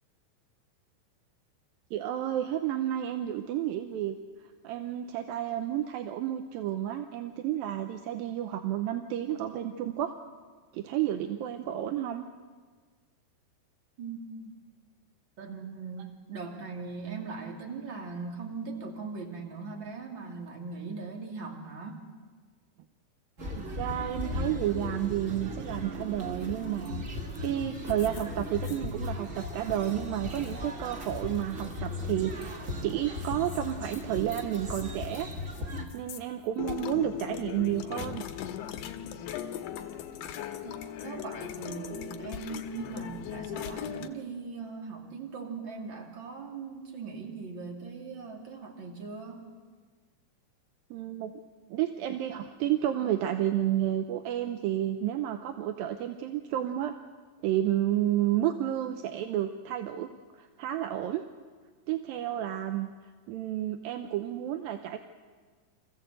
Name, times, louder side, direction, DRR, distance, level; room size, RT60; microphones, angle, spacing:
voice 1, 1.9-4.2 4.6-10.1 10.7-12.2 23.5-27.0 27.4-35.3 35.9-38.2 50.9-51.3 51.7-56.9 57.4-60.1 60.3-61.2 61.9-62.9 63.3-65.0, right 12 dB, 75° right, 7 dB, 2.3 m, -31 dB
voice 2, 14.0-14.6 15.4-22.1 40.6-40.7 41.0-49.4, right 4 dB, 35° right, 1 dB, 2.7 m, -40 dB
sound 1, 23.4-35.9, left 1 dB, 60° right, 0.8 m, -37 dB
sound 2, 26.8-27.1 27.3-27.5 27.7-29.1 29.6-29.9 30.3-30.5 30.9-31.8 32.4-32.5 33.5-35.6 35.9-36.2 36.6-44.1, left 10 dB, 85° left, 3.1 m, -39 dB
26.5 x 15.0 x 7.9 m, 1.5 s
omnidirectional pair, 4.6 m